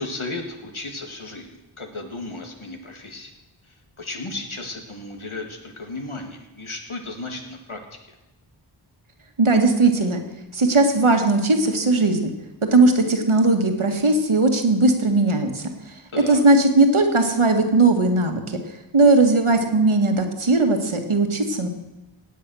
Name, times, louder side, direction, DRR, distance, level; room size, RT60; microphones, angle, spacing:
voice 1, 0.0-3.3 3.7-7.8 16.1-16.4, left 2 dB, 75° left, 4 dB, 2.2 m, -34 dB
voice 2, 9.4-10.2 10.5-12.3 12.7-15.7 16.3-18.6 18.9-21.7, right 2 dB, 80° right, 4 dB, 1.9 m, -18 dB
17.5 x 8.5 x 6.3 m, 1.1 s
wide cardioid pair, 50°, 49 cm